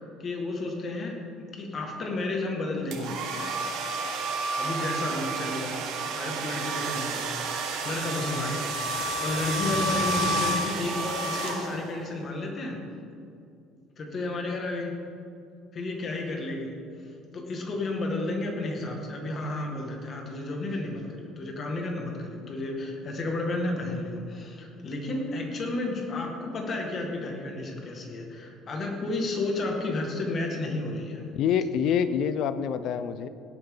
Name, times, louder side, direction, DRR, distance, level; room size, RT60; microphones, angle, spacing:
voice 1, 0.0-3.2 4.6-5.8 6.1-12.8 14.0-15.0 15.7-16.8 17.3-31.2, left 2 dB, 35° left, 1 dB, 2.0 m, -32 dB
sound 1, 2.9-12.0, right 2 dB, 70° right, 1.8 m, -30 dB
voice 2, 31.3-33.3, left 8 dB, 60° left, 13 dB, 0.6 m, -26 dB
17.5 x 8.7 x 4.0 m, 2.5 s
cardioid pair, 135°, 0 cm